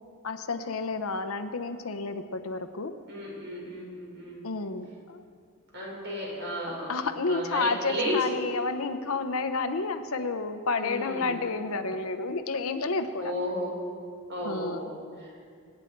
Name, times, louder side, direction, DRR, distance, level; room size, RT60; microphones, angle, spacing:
voice 1, 0.2-2.9 4.4-5.2 6.9-13.3 14.4-14.9, left 3 dB, 70° left, 8 dB, 0.9 m, -30 dB
voice 2, 3.1-4.4 5.7-6.9 7.3-8.2 10.7-11.4 13.2-13.7 14.3-15.3, equal, 55° right, -3 dB, 4.8 m, -34 dB
25.0 x 9.8 x 4.6 m, 2.2 s
head